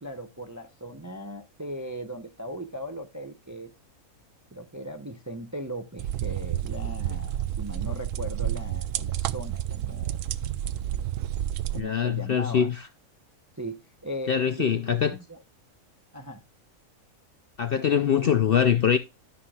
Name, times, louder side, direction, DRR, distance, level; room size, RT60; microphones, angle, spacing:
voice 1, 0.0-3.7 4.5-10.2 11.7-12.7 13.6-15.4 16.1-16.4 17.9-18.5, right 1 dB, 20° right, 0.5 m, -38 dB
sound 1, 6.0-11.8, right 11 dB, 70° right, 0.9 m, -30 dB
voice 2, 11.7-12.8 14.3-15.1 17.6-19.0, left 8 dB, 60° left, 0.6 m, -23 dB
12.5 x 5.7 x 2.3 m
omnidirectional pair, 1.5 m